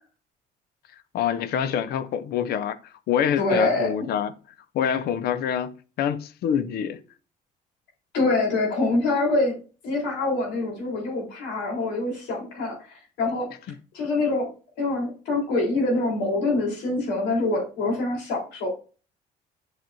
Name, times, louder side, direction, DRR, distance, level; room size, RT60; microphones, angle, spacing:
voice 1, 1.1-2.8 3.1-4.3 4.7-7.0, left 8 dB, 70° left, 0.7 m, -26 dB
voice 2, 3.4-3.9 8.1-13.5 13.9-14.5 14.8-18.7, left 2 dB, 85° left, 3.9 m, -25 dB
7.7 x 6.0 x 2.6 m
cardioid pair, 110°, 17 cm